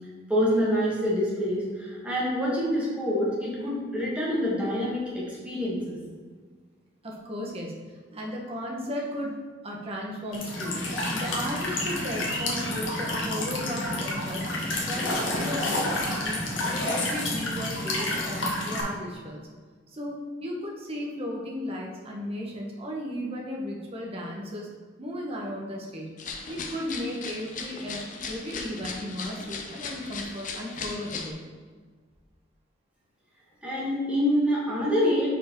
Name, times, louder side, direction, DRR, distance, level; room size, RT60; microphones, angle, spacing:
voice 1, 0.3-6.0 33.6-35.3, equal, 5° right, -7 dB, 1.7 m, -26 dB
voice 2, 7.0-14.5 14.8-19.4 19.9-24.7 25.0-26.1 26.5-31.5, equal, 30° right, -2 dB, 1.1 m, -35 dB
Walk footsteps / Chirp tweet / Stream, 10.3-18.8, left 1 dB, 85° left, 1.3 m, -29 dB
sound 1, 26.2-31.3, left 4 dB, 45° left, 0.7 m, -37 dB
5.0 x 4.6 x 4.5 m, 1.5 s
head